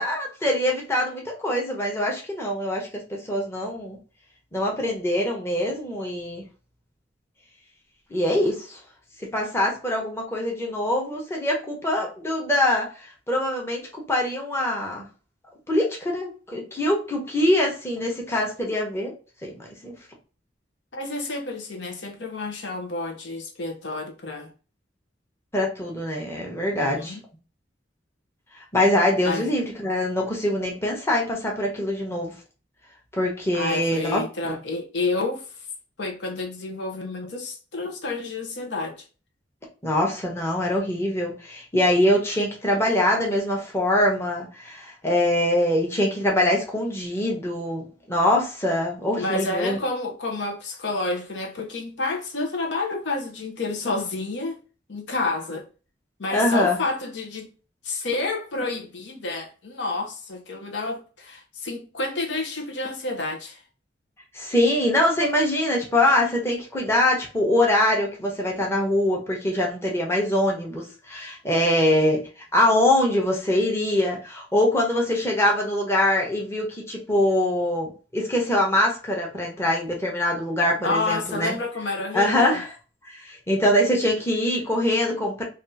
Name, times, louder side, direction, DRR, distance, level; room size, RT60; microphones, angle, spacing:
voice 1, 0.0-4.0 4.5-6.4 8.1-8.8 9.3-15.0 15.7-19.2 19.4-19.9 25.5-27.2 28.7-32.3 33.1-34.6 39.8-49.8 56.3-56.8 64.3-72.2 72.5-81.5 82.1-82.7 83.0-85.4, left 1 dB, 15° left, 0.8 m, -23 dB
voice 2, 20.9-24.5 26.8-27.2 29.2-29.5 33.5-35.5 36.0-39.0 49.2-54.5 54.9-55.7 56.2-57.5 57.8-63.6 80.8-82.6, left 3 dB, 75° left, 0.7 m, -29 dB
3.4 x 2.4 x 2.7 m
head